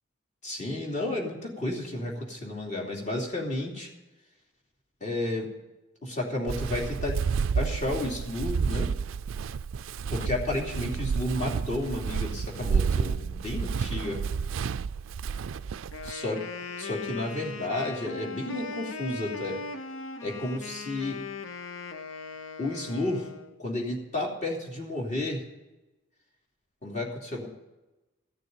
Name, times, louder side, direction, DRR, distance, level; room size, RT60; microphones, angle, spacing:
voice 1, 0.4-3.9 5.0-5.5 6.0-7.2 7.5-8.9 10.1-14.2 16.0-16.4 16.8-19.6 20.2-21.2 22.6-23.3 23.6-25.4 26.8-27.5, left 1 dB, 35° left, -1 dB, 2.8 m, -32 dB
Walk footsteps, 6.5-16.1, right 6 dB, 70° right, 0.4 m, -30 dB
Wind instrument woodwind instrument, 15.8-23.6, left 4 dB, 75° left, 0.9 m, -39 dB
15.0 x 6.8 x 8.9 m, 1.0 s
head